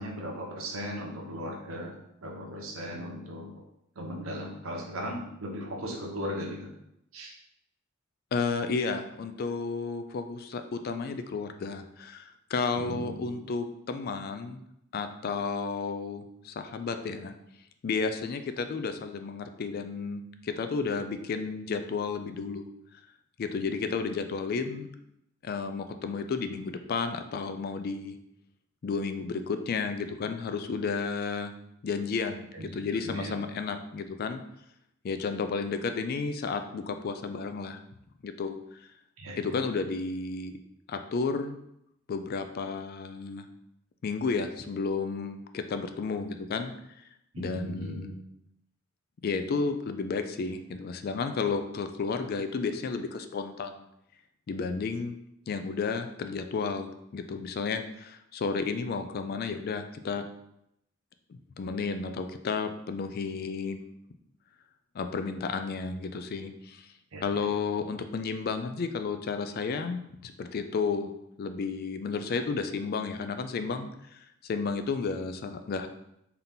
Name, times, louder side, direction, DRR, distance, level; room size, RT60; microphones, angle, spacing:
voice 1, 0.0-3.6 4.0-6.7 7.1-7.3 12.7-13.3 32.5-32.7 33.0-33.4 39.2-39.4 47.3-48.0 67.1-67.5, equal, 85° right, -1 dB, 0.9 m, -37 dB
voice 2, 8.3-14.6 14.9-17.3 17.8-22.7 23.4-24.9 25.4-28.2 28.8-31.5 31.8-34.4 35.0-37.8 38.2-38.6 39.4-40.6 40.9-41.6 42.1-43.5 44.0-46.7 47.4-48.2 49.2-53.9 54.5-55.1 55.5-60.3 61.3-63.8 64.9-66.9 67.2-71.1 71.4-75.9, left 4 dB, 45° left, 8 dB, 0.3 m, -32 dB
3.9 x 2.8 x 3.5 m, 0.79 s
head